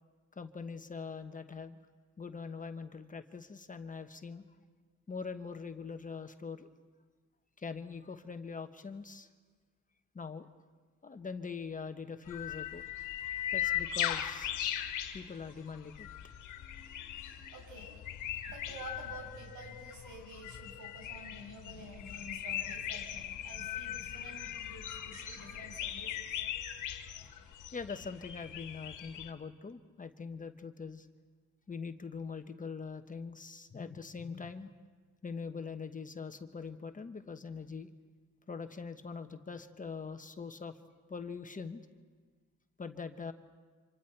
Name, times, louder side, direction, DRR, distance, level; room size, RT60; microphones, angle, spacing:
voice 1, 0.4-1.8 2.2-4.4 5.1-6.7 7.6-9.3 10.1-10.5 11.0-12.8 13.5-14.5 15.1-16.1 27.7-31.1 31.7-34.7 35.2-37.9 38.5-40.8 41.1-41.8 42.8-43.3, left 5 dB, 25° left, 7 dB, 1.1 m, -43 dB
sound 1, 12.3-29.3, left 11 dB, 85° left, 1.6 m, -39 dB
voice 2, 17.1-18.0 18.4-26.4, right 1 dB, 80° right, 0 dB, 7.1 m, -50 dB
29.0 x 26.0 x 4.6 m, 1.4 s
cardioid pair, 90°, 30 cm